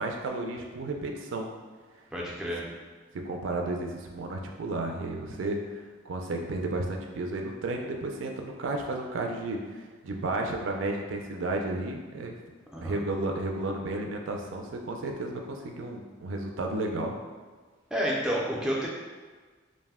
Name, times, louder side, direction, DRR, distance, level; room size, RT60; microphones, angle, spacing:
voice 1, 0.0-1.5 3.1-12.3 12.8-17.1, right 2 dB, 80° right, 2 dB, 0.4 m, -33 dB
voice 2, 2.1-2.7 12.7-13.0 17.9-18.9, equal, 5° right, -4 dB, 0.3 m, -29 dB
2.6 x 2.1 x 3.4 m, 1.4 s
head